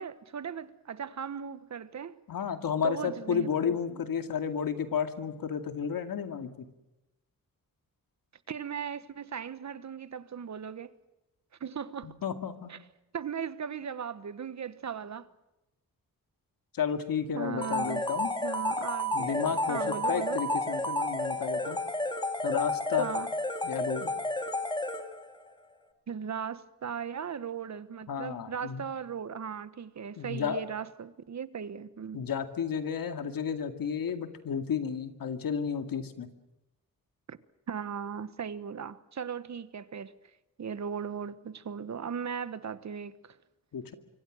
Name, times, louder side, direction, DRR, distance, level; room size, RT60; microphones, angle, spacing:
voice 1, 0.0-2.2 2.8-4.0 8.5-10.9 11.6-12.2 12.7-12.8 13.1-15.3 17.3-18.0 18.4-20.4 23.0-23.3 26.1-32.2 37.3-37.4 37.7-40.1 40.6-43.4, right 7 dB, 55° right, 1.2 m, -38 dB
voice 2, 2.3-6.7 12.0-12.7 16.7-18.3 19.1-21.8 22.4-23.1 23.6-24.1 28.1-28.8 30.2-30.6 32.1-36.3 43.7-43.9, left 7 dB, 80° left, 2.2 m, -32 dB
sound 1, 17.6-25.4, left 1 dB, 15° left, 2.2 m, -31 dB
25.5 x 24.5 x 6.3 m
wide cardioid pair, 130°, 34 cm